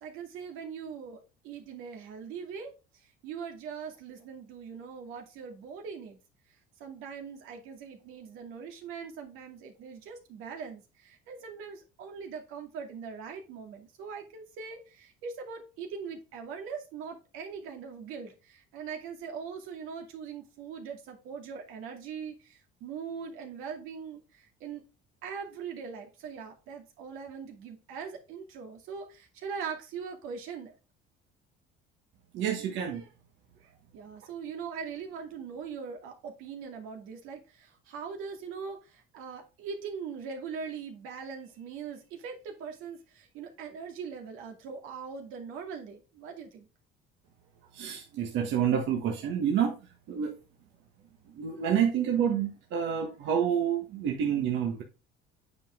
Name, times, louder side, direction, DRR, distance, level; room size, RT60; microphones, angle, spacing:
voice 1, 0.0-2.7 3.2-6.2 6.8-24.8 25.2-30.7 33.9-46.7, right 6 dB, 80° right, 2.3 m, -41 dB
voice 2, 32.3-33.0 47.7-49.7 50.1-50.3 51.4-54.8, right 8 dB, 65° right, 1.6 m, -28 dB
9.0 x 5.4 x 3.8 m
cardioid pair, 125°, 21 cm